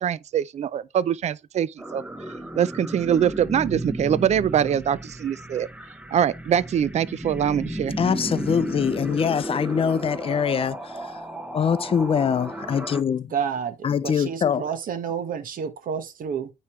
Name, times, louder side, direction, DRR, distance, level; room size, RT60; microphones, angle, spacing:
voice 1, 0.0-2.0 2.6-5.7 6.1-8.0, right 9 dB, 45° right, 0.4 m, -23 dB
sound 1, 1.8-13.0, right 1 dB, 10° right, 0.8 m, -34 dB
voice 2, 8.0-10.8 11.5-13.3 13.8-14.7, left 7 dB, 35° left, 0.5 m, -23 dB
voice 3, 13.3-16.5, right 7 dB, 65° right, 1.2 m, -30 dB
9.4 x 3.2 x 3.1 m
cardioid pair, 95°, 16 cm